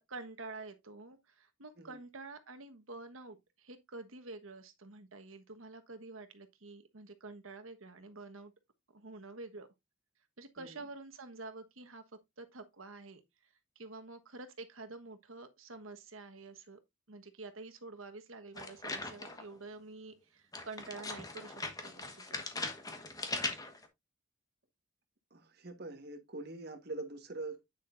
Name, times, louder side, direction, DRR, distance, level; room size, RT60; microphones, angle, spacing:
voice 1, 0.0-8.5 8.9-9.7 10.4-12.0 12.4-16.8 17.1-22.5, right 3 dB, 85° right, 1.3 m, -48 dB
voice 2, 10.6-10.9 25.3-27.7, right 2 dB, 50° right, 1.4 m, -44 dB
sound 1, 18.6-19.5 20.5-23.9, left 3 dB, 20° left, 1.3 m, -40 dB
9.3 x 6.4 x 2.5 m
head